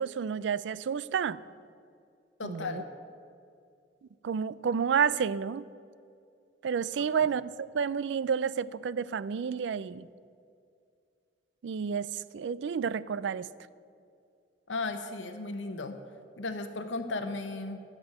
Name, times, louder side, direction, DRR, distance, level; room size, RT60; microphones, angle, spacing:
voice 1, 0.0-1.4 2.4-2.8 4.2-5.7 6.6-10.1 11.6-13.5, right 6 dB, 70° right, 18 dB, 0.4 m, -30 dB
voice 2, 2.4-2.8 14.7-16.0 16.4-17.8, left 3 dB, 80° left, 7 dB, 0.9 m, -35 dB
13.0 x 6.1 x 9.0 m, 2.4 s
head